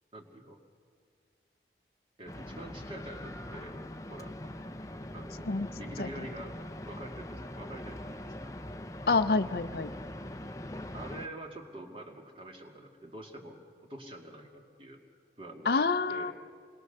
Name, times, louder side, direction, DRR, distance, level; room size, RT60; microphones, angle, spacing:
voice 1, 0.1-0.6 2.2-3.8 4.1-4.3 5.1-6.6 6.9-8.5 10.9-13.6 13.9-15.0 15.4-15.8 16.1-16.3, right 1 dB, 30° right, 2 dB, 2.2 m, -46 dB
sound 1, 2.3-11.3, left 1 dB, 20° left, 0.7 m, -42 dB
voice 2, 9.1-9.9 15.7-16.3, left 4 dB, 60° left, 11 dB, 0.6 m, -27 dB
27.5 x 21.0 x 6.8 m, 2.1 s
head